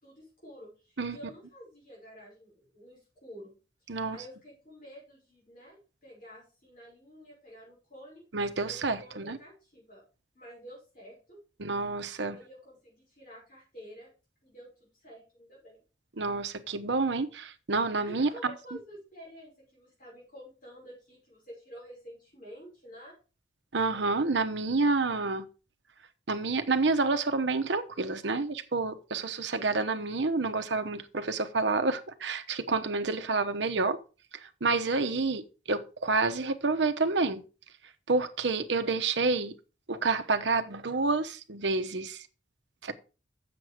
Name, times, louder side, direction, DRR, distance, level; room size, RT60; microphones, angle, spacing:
voice 1, 0.0-3.5 3.8-8.2 8.6-10.0 10.3-11.4 12.3-14.1 14.4-15.8 18.1-23.1, equal, 45° left, 5.9 m, -50 dB
voice 2, 8.3-9.4 11.6-12.4 16.2-18.3 23.7-25.4 26.3-34.0 34.6-37.4 38.1-39.5 39.9-42.2 42.8-42.9, right 3 dB, 70° right, 0.9 m, -28 dB
7.8 x 7.0 x 4.9 m
head